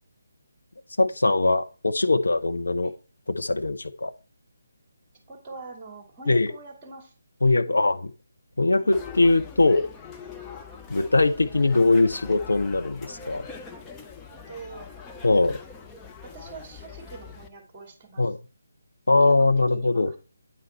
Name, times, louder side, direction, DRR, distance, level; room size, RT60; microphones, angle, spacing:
voice 1, 1.0-2.9 3.3-4.1 6.3-6.5 7.4-8.1 8.6-9.9 10.9-13.4 15.2-15.6 18.2-18.4 19.1-20.1, left 2 dB, 65° left, 7 dB, 0.8 m, -21 dB
voice 2, 5.3-7.1 8.7-9.0 10.7-10.8 13.1-13.4 14.3-14.9 16.2-18.3 19.3-20.2, right 4 dB, 15° right, 2 dB, 2.3 m, -44 dB
sound 1, 8.9-17.5, left 5 dB, 10° left, 0.6 m, -43 dB
9.1 x 4.0 x 4.3 m, 0.34 s
figure-of-eight pair, 150°, 0 cm